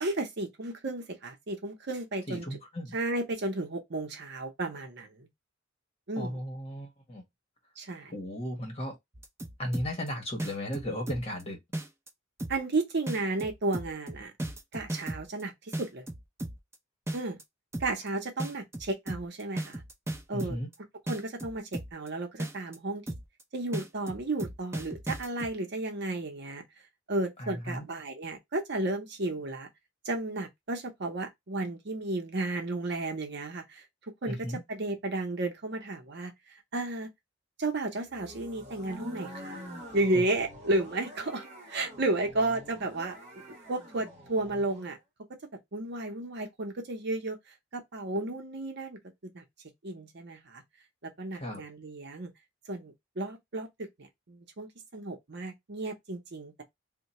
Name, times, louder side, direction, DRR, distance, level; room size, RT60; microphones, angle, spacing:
voice 1, 0.0-2.5 2.9-5.3 6.1-6.4 7.8-8.1 12.5-14.3 14.7-16.1 17.1-17.4 17.8-19.8 20.3-20.6 21.1-23.0 23.5-26.6 27.1-29.7 30.0-33.8 34.2-34.4 34.7-37.1 37.6-39.6 39.9-43.2 43.5-45.0 45.7-47.4 47.7-49.4 49.8-50.6 51.0-52.3 52.7-56.6, right 2 dB, 55° right, 0.8 m, -33 dB
voice 2, 2.3-3.0 6.2-7.2 8.1-8.9 9.6-11.6 20.3-20.7 27.4-27.9 34.3-34.6 51.4-51.6, equal, 30° left, 1.2 m, -35 dB
sound 1, 9.1-10.1 10.4-11.4 11.7-12.1 12.4-12.7 13.1-15.4 15.7-16.7 17.1-17.4 17.7-18.1 18.4-20.7 21.1-22.1 22.4-22.8 23.1-23.4 23.7-25.5, right 1 dB, 15° right, 0.5 m, -36 dB
sound 2, 38.1-44.9, equal, 35° right, 1.1 m, -46 dB
2.8 x 2.2 x 4.1 m
head